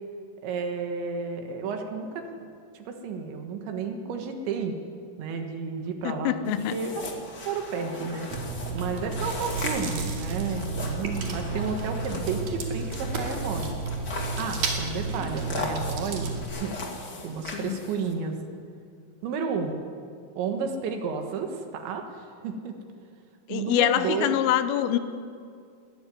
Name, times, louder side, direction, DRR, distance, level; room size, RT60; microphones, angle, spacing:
voice 1, 0.4-2.3 2.8-4.8 5.2-7.0 7.5-8.3 8.7-13.8 14.4-16.7 17.2-18.4 19.2-19.8 20.4-22.8 23.5-24.4, right 5 dB, 70° right, 4 dB, 3.6 m, -32 dB
voice 2, 6.0-6.8 17.5-17.8 23.5-25.0, left 12 dB, 80° left, 11 dB, 3.3 m, -25 dB
sound 1, 6.5-18.1, left 3 dB, 60° left, 1.1 m, -38 dB
Chewing mastication, 8.3-16.5, right 3 dB, 50° right, 3.2 m, -32 dB
21.5 x 13.0 x 9.8 m, 2.3 s
omnidirectional pair, 5.8 m